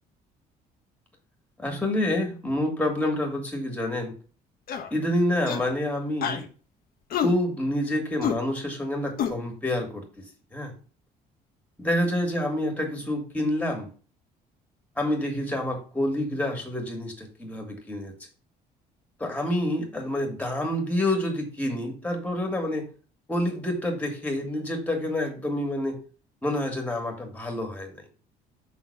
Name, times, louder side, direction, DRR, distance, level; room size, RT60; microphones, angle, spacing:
voice 1, 1.6-4.1 4.9-6.4 7.2-10.0 10.5-10.7 11.8-13.9 15.0-18.1 19.2-22.9 23.3-26.0 26.4-28.0, left 1 dB, 10° left, 3 dB, 2.2 m, -28 dB
sound 1, 4.7-4.9 5.5-5.7 6.2-6.4 7.1-7.3 8.2-8.4 9.2-9.3, left 8 dB, 60° left, 1.2 m, -27 dB
5.9 x 4.1 x 5.6 m, 0.38 s
cardioid pair, 110°, 17 cm